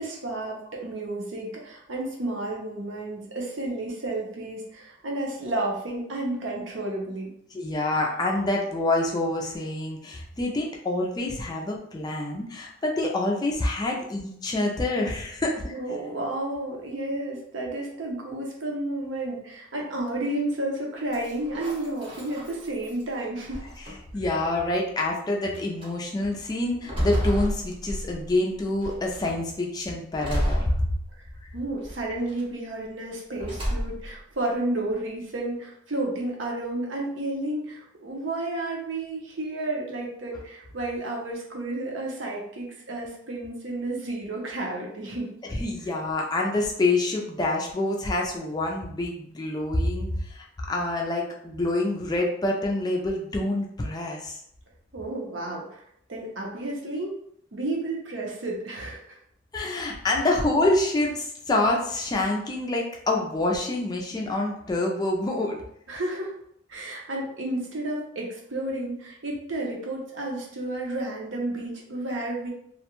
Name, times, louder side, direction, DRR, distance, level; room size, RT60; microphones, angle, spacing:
voice 1, 0.0-7.3 15.7-23.6 31.5-45.3 54.9-55.8 56.1-57.1 57.5-59.2 65.9-66.3 66.7-72.5, right 2 dB, 80° right, -2 dB, 0.7 m, -31 dB
voice 2, 7.5-15.7 24.1-30.9 45.4-54.4 59.5-65.6, left 2 dB, 20° left, -1 dB, 0.3 m, -27 dB
sound 1, 21.1-23.0 23.5-24.2 25.0-25.1 25.5-25.9 26.4-28.4 28.8-29.3 30.2-31.4 31.8-32.4 33.4-34.2, equal, 25° right, 0.8 m, -30 dB
2.4 x 2.1 x 2.9 m, 0.71 s
head